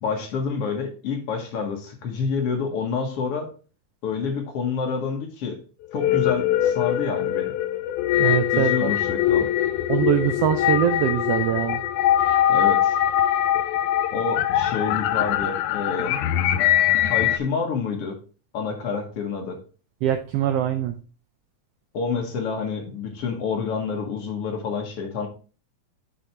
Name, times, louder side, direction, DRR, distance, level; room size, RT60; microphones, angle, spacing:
voice 1, 0.0-3.5 4.0-5.6 5.9-7.5 8.5-9.5 12.5-13.0 14.1-16.1 17.1-18.2 18.5-19.6 21.9-25.3, left 5 dB, 60° left, 3 dB, 2.0 m, -28 dB
sound 1, 5.8-17.4, left 11 dB, 90° left, 2.1 m, -22 dB
voice 2, 8.2-8.9 9.9-11.8 20.0-21.0, right 10 dB, 80° right, 8 dB, 1.4 m, -23 dB
6.3 x 5.3 x 4.3 m, 0.37 s
omnidirectional pair, 3.3 m